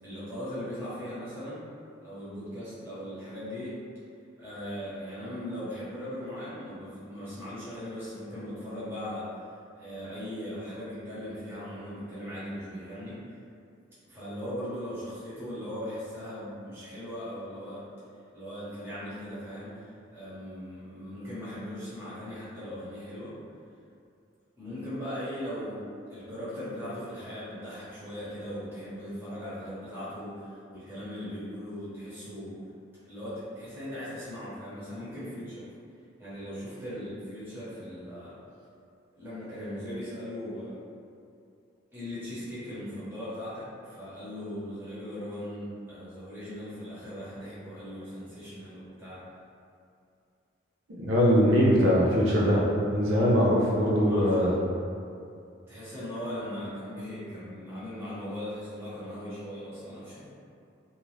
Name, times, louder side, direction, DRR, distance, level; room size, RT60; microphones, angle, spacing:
voice 1, 0.0-1.7 2.0-3.8 4.4-9.3 9.8-13.2 14.0-17.8 18.3-23.3 24.6-25.8 26.1-32.6 33.0-35.7 36.2-38.4 39.1-40.8 41.9-49.2 54.0-54.7 55.7-60.3, equal, 10° right, -12 dB, 0.9 m, -39 dB
voice 2, 51.0-54.5, equal, 90° right, -6 dB, 0.6 m, -22 dB
2.7 x 2.4 x 3.2 m, 2.5 s
head